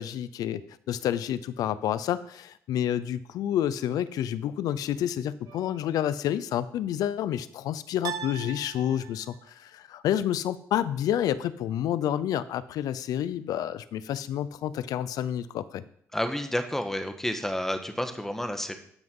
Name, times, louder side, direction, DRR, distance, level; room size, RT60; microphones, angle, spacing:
voice 1, 0.0-15.8, left 10 dB, 85° left, 16 dB, 0.6 m, -29 dB
sound 1, 5.5-6.2 8.0-9.5, right 9 dB, 80° right, 1.0 m, -40 dB
voice 2, 16.1-18.8, left 1 dB, 5° left, 7 dB, 1.5 m, -30 dB
13.0 x 5.9 x 5.4 m, 0.66 s
cardioid pair, 80°, 6 cm